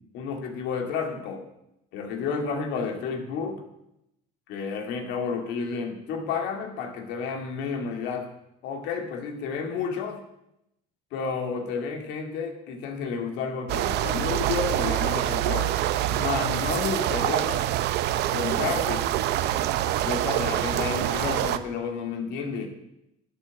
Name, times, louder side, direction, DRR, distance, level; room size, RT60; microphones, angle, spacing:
voice 1, 0.0-1.4 1.9-3.6 4.5-8.3 8.6-10.2 11.1-15.7 16.1-17.7 18.3-19.1 20.0-22.7, left 5 dB, 75° left, 4 dB, 2.3 m, -31 dB
sound 1, 13.7-21.6, right 13 dB, 70° right, 0.7 m, -26 dB
11.0 x 6.5 x 8.4 m, 0.84 s
supercardioid pair, 100°, 18 cm